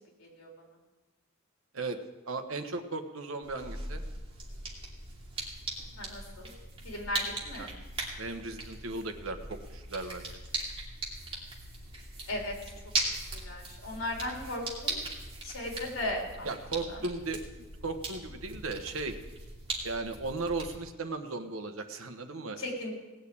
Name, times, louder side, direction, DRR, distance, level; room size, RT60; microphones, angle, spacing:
voice 1, 0.2-0.5 6.0-6.5 6.8-7.7 12.3-12.5 13.3-15.0 15.4-16.5 16.9-17.0 22.6-22.9, left 1 dB, 70° left, 0 dB, 3.8 m, -36 dB
voice 2, 2.3-4.0 7.6-7.7 8.2-10.4 16.4-17.4 17.8-19.2 19.8-22.6, right 3 dB, 75° right, 8 dB, 1.2 m, -36 dB
sound 1, 3.4-20.8, right 2 dB, 25° right, 2.7 m, -39 dB
18.0 x 6.5 x 8.6 m, 1.2 s
head